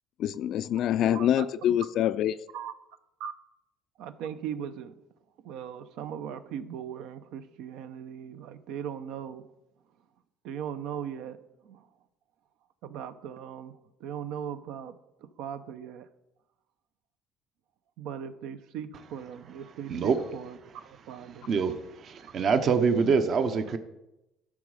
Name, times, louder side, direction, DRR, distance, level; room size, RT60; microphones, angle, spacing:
voice 1, 0.2-2.4, left 11 dB, 60° left, 12 dB, 0.3 m, -25 dB
voice 2, 1.0-1.5 2.5-2.7 3.2-3.3 4.0-5.0 5.4-9.4 10.4-11.9 12.8-15.0 15.4-16.1 18.0-20.6 20.8-21.5, right 8 dB, 75° right, 11 dB, 0.7 m, -39 dB
voice 3, 21.5-23.8, right 5 dB, 45° right, 9 dB, 0.8 m, -25 dB
12.0 x 6.2 x 4.9 m, 0.92 s
cardioid pair, 105°, 0 cm